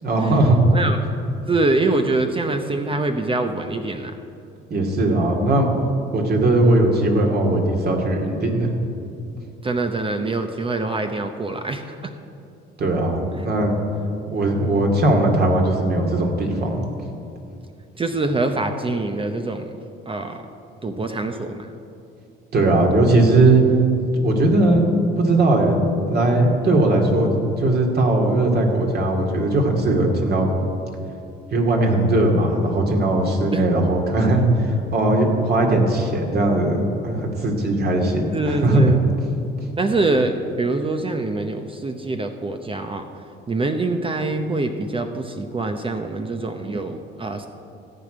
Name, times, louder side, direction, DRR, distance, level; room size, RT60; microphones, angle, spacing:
voice 1, 0.0-0.6 4.7-5.7 6.1-8.7 12.8-13.8 14.3-16.8 22.5-23.6 24.2-24.9 25.2-30.5 31.5-38.9, right 2 dB, 50° right, 1 dB, 2.4 m, -19 dB
voice 2, 1.5-4.2 9.6-12.0 13.4-13.5 18.0-19.7 20.1-20.4 20.8-21.7 33.5-33.6 38.3-39.0 39.8-43.1 43.5-47.5, right 2 dB, 25° right, 6 dB, 0.8 m, -24 dB
14.5 x 5.0 x 9.1 m, 2.6 s
supercardioid pair, 80°, 21 cm